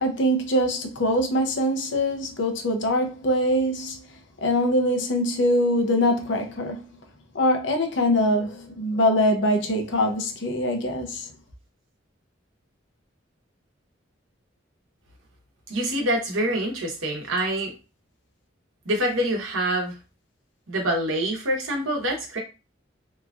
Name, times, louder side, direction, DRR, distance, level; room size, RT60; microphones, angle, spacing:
voice 1, 0.0-4.0 4.4-6.8 7.3-11.2, equal, 65° left, 0.6 m, -23 dB
voice 2, 15.7-17.7 18.8-20.0 20.7-22.4, right 1 dB, 90° right, 1.0 m, -25 dB
2.9 x 2.4 x 2.4 m
head